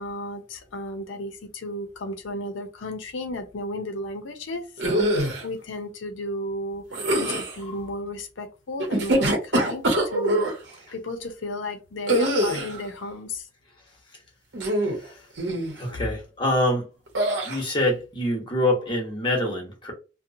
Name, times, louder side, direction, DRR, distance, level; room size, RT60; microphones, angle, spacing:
voice 1, 0.0-6.8 7.2-9.8 10.1-10.5 10.9-13.5 15.9-16.0, left 1 dB, 80° left, 8 dB, 0.6 m, -34 dB
sound 1, 4.8-5.4 6.9-7.6 8.8-10.5 12.1-12.8 14.5-15.0 15.4-15.8 17.1-17.6, right 1 dB, 65° right, 0.8 m, -23 dB
voice 2, 15.0-15.3 15.7-16.9 17.4-19.9, left 1 dB, 25° left, 1 dB, 1.0 m, -25 dB
2.8 x 2.1 x 2.6 m, 0.31 s
head